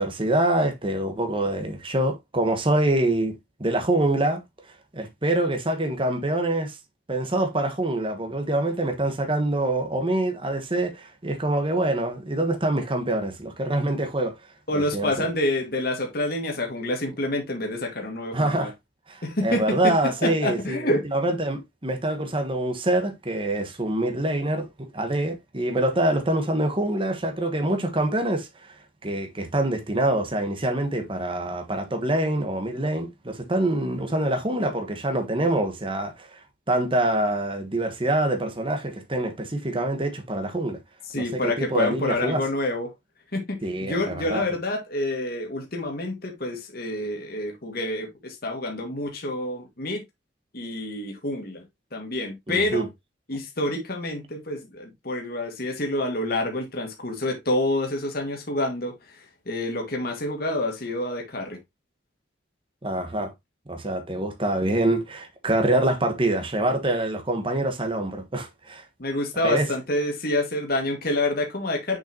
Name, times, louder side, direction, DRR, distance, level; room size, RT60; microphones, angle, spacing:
voice 1, 0.0-4.4 4.9-6.8 7.1-14.3 14.7-15.3 18.3-18.7 19.1-28.7 29.0-36.4 36.7-40.8 41.1-42.4 43.6-44.4 52.5-52.9 62.8-63.3 63.7-68.8 69.4-69.7, right 1 dB, 30° right, 1.4 m, -25 dB
voice 2, 14.7-18.7 19.2-21.0 41.1-42.9 43.3-50.0 50.5-51.6 51.9-52.9 53.3-58.9 59.5-61.6 69.0-72.0, left 1 dB, 55° left, 2.0 m, -27 dB
6.8 x 5.7 x 2.9 m
head